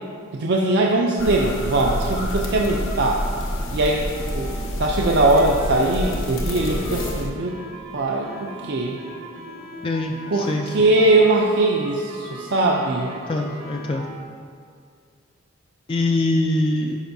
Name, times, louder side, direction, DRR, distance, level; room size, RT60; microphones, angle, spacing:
voice 1, 0.3-3.2 3.7-4.1 4.3-4.5 4.8-7.6 7.9-9.0 10.3-13.2, right 2 dB, 55° right, -1 dB, 0.5 m, -20 dB
sound 1, 1.2-7.3, equal, 75° left, 0.9 m, -28 dB
sound 2, 4.1-14.2, right 1 dB, 80° right, 1.3 m, -38 dB
voice 2, 9.8-10.6 13.3-14.1 15.9-17.0, left 2 dB, 25° left, 2 dB, 0.3 m, -23 dB
11.0 x 5.4 x 2.7 m, 2.2 s
head